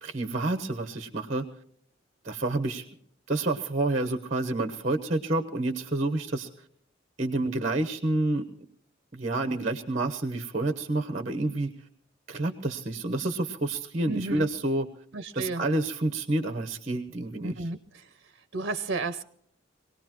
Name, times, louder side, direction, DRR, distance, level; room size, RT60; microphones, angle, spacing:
voice 1, 0.0-1.4 2.2-3.0 3.3-6.5 7.2-8.5 9.1-11.7 12.3-14.9 15.3-17.7, right 2 dB, 35° right, 7 dB, 1.1 m, -29 dB
voice 2, 14.1-14.5 15.1-15.6 17.4-18.0 18.5-19.2, right 3 dB, 55° right, 11 dB, 0.8 m, -32 dB
24.0 x 18.5 x 3.0 m, 0.64 s
head